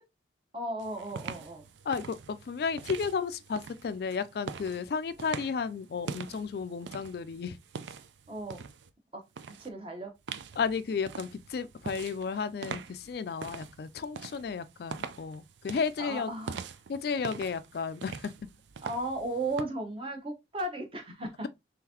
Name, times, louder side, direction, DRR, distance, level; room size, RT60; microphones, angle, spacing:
voice 1, 0.5-1.7 8.3-8.7 9.1-10.2 16.0-16.6 18.8-21.5, right 2 dB, 30° right, 0.9 m, -36 dB
sound 1, 0.8-8.9 9.4-9.7 10.3-19.6, right 5 dB, 75° right, 0.4 m, -44 dB
voice 2, 1.9-7.6 10.6-16.3 16.9-18.3, left 5 dB, 55° left, 0.3 m, -33 dB
3.8 x 3.4 x 2.8 m
head